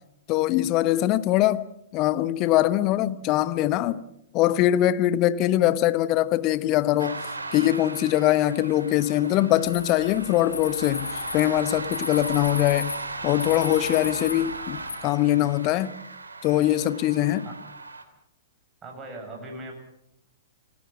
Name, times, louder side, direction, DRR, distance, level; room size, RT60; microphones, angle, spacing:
voice 1, 0.3-1.6 1.9-4.0 4.3-7.2 7.5-15.9 16.4-17.5, left 14 dB, 30° left, 1.1 m, -22 dB
sound 1, 7.0-18.0, right 3 dB, 75° right, 3.1 m, -36 dB
sound 2, 9.6-15.0, left 6 dB, 65° left, 2.4 m, -37 dB
voice 2, 18.8-19.7, right 1 dB, 15° right, 7.6 m, -39 dB
30.0 x 19.0 x 7.3 m
figure-of-eight pair, 105°, 0 cm